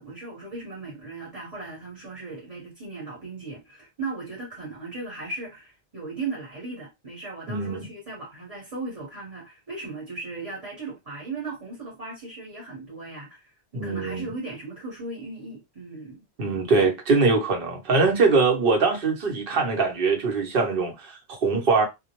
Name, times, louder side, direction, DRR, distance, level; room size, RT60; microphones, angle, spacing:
voice 1, 0.0-16.2, right 3 dB, 35° right, 1.0 m, -37 dB
voice 2, 7.5-7.9 13.7-14.3 16.4-21.9, right 4 dB, 60° right, 0.9 m, -22 dB
2.2 x 2.0 x 2.8 m
omnidirectional pair, 1.1 m